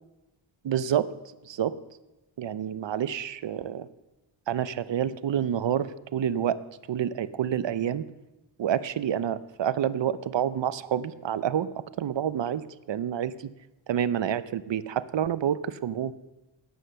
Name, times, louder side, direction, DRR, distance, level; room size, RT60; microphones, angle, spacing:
voice 1, 0.6-1.1 1.5-1.8 2.4-3.9 4.5-6.6 6.9-8.0 8.6-13.3 13.9-16.1, right 9 dB, 60° right, 16 dB, 0.7 m, -28 dB
12.5 x 9.7 x 6.8 m, 1.0 s
wide cardioid pair, 105°, 49 cm